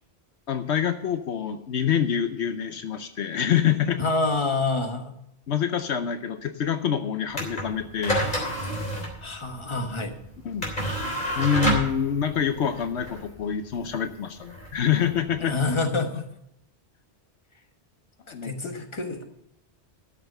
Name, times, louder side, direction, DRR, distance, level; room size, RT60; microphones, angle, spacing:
voice 1, 0.5-4.0 5.5-8.3 10.4-10.8 11.4-15.6 18.3-18.5, left 8 dB, 75° left, 9 dB, 1.0 m, -26 dB
voice 2, 4.0-5.2 9.2-10.2 15.4-16.3 18.3-19.2, left 3 dB, 25° left, 5 dB, 1.4 m, -27 dB
sound 1, 7.3-15.8, right 1 dB, 45° left, 3.7 m, -30 dB
13.0 x 6.8 x 6.6 m, 0.79 s
omnidirectional pair, 1.1 m